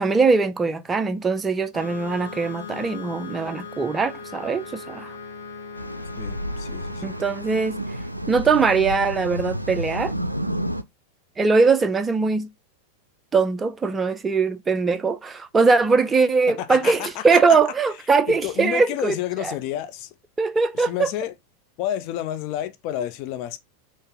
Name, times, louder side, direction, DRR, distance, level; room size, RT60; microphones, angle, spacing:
voice 1, 0.0-5.1 7.0-7.8 8.3-10.1 11.4-12.5 13.3-19.5 20.4-21.1, right 4 dB, 15° right, 0.4 m, -21 dB
sound 1, 1.7-9.1, left 4 dB, 75° left, 0.9 m, -40 dB
sound 2, 5.7-10.8, equal, 90° right, 0.3 m, -30 dB
voice 2, 6.2-7.2 16.6-17.6 18.3-20.1 20.7-21.3 21.8-23.6, left 12 dB, 45° left, 0.5 m, -30 dB
4.0 x 2.6 x 3.5 m
figure-of-eight pair, 90°, 0 cm